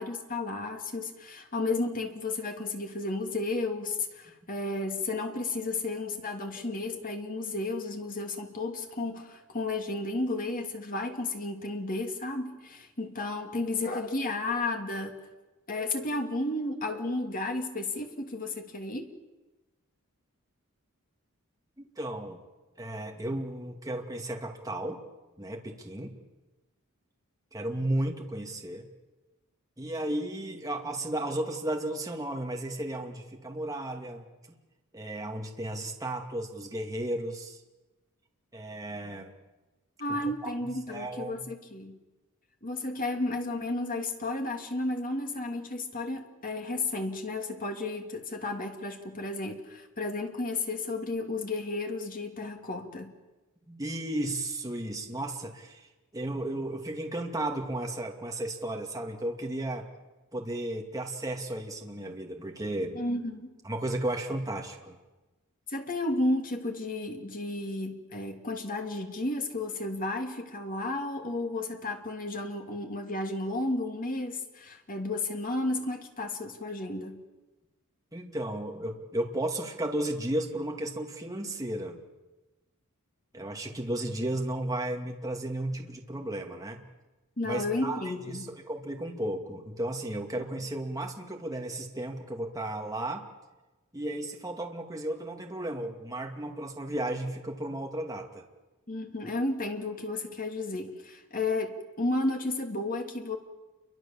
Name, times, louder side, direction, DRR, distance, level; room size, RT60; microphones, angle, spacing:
voice 1, 0.0-15.2 15.7-19.1 40.0-42.0 42.6-53.1 62.9-63.5 65.7-77.2 87.4-88.4 98.9-103.4, left 2 dB, 40° left, 4 dB, 2.8 m, -33 dB
voice 2, 21.8-22.4 22.8-25.0 25.4-26.1 27.5-28.9 29.8-34.3 34.9-37.6 38.5-39.3 40.1-41.5 53.7-55.9 56.1-59.9 60.3-63.0 63.6-65.0 78.1-82.0 83.3-86.8 87.4-93.2 93.9-98.4, right 1 dB, 15° right, 1 dB, 2.5 m, -34 dB
29.0 x 24.0 x 7.4 m, 1.1 s
head